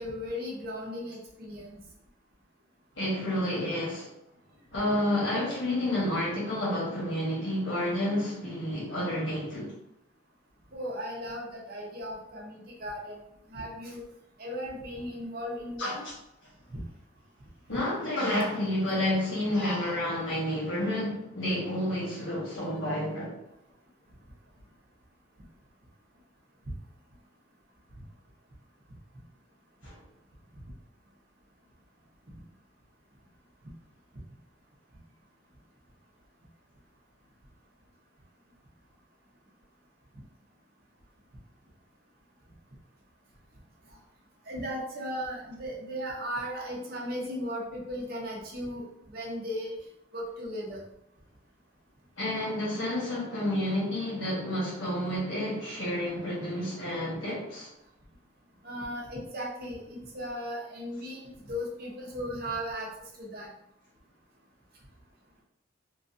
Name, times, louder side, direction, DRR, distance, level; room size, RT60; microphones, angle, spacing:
voice 1, 0.0-1.8 10.7-13.2 13.5-14.0 14.4-16.0 16.7-16.8 44.5-49.7 50.1-50.8 58.6-62.9 63.2-63.5, equal, 50° right, -2 dB, 0.7 m, -36 dB
voice 2, 3.0-4.1 4.7-9.7 15.8-16.0 17.7-23.4 29.8-30.0 52.2-57.7, left 1 dB, 75° left, -5 dB, 1.4 m, -30 dB
3.0 x 2.5 x 2.5 m, 0.82 s
head